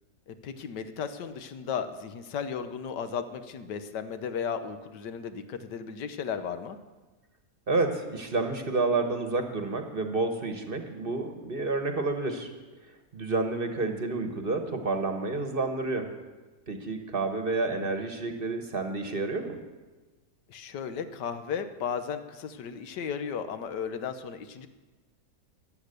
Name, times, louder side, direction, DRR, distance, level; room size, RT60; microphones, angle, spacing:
voice 1, 0.3-6.8 20.5-24.7, left 7 dB, 80° left, 10 dB, 1.5 m, -35 dB
voice 2, 7.7-12.5 13.1-16.1 16.7-19.6, right 3 dB, 35° right, 6 dB, 1.1 m, -29 dB
14.5 x 10.5 x 6.7 m, 1.2 s
omnidirectional pair, 1.8 m